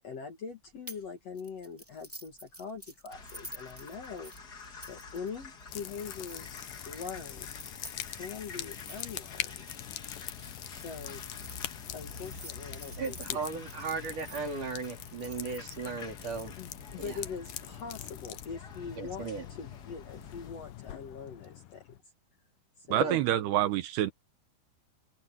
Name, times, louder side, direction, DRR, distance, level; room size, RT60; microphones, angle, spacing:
voice 1, 0.0-4.6 4.9-6.5 6.9-7.5 8.1-9.7 10.7-11.2 11.9-13.4 16.6-22.0 22.8-23.2, left 5 dB, 50° left, 2.2 m, -43 dB
sound 1, 0.9-1.1 1.4-6.7 7.4-11.5 12.1-14.4 14.8-16.4, equal, 5° right, 1.6 m, -50 dB
sound 2, 3.1-20.5, left 4 dB, 35° left, 1.9 m, -48 dB
sound 3, 5.7-22.0, left 13 dB, 70° left, 2.2 m, -43 dB
voice 2, 13.0-16.5 17.0-17.2 19.0-19.4 23.0-23.2, right 4 dB, 50° right, 5.2 m, -35 dB
voice 3, 22.9-24.1, right 13 dB, 80° right, 3.1 m, -27 dB
omnidirectional pair, 4.7 m